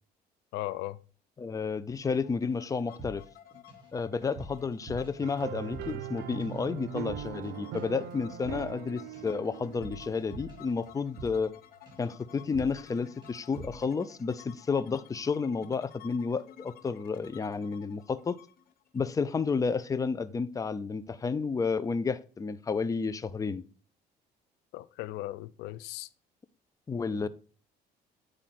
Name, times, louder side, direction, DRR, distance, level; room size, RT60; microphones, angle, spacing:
voice 1, 0.5-1.0 24.7-26.1 27.2-27.3, left 16 dB, 85° left, 0.4 m, -37 dB
voice 2, 1.4-3.2 3.9-11.5 12.0-18.4 18.9-23.6 26.9-27.3, left 5 dB, 20° left, 0.5 m, -31 dB
sound 1, 2.0-19.7, left 11 dB, 60° left, 1.1 m, -54 dB
sound 2, 3.0-3.9 4.2-6.1 6.4-6.7 7.0-7.5 7.8-11.6 11.9-12.2 12.5-13.0 13.2-13.9, right 2 dB, 25° right, 4.2 m, -47 dB
sound 3, 5.2-10.8, right 10 dB, 85° right, 0.6 m, -41 dB
9.1 x 4.9 x 4.2 m
cardioid pair, 110°, 17 cm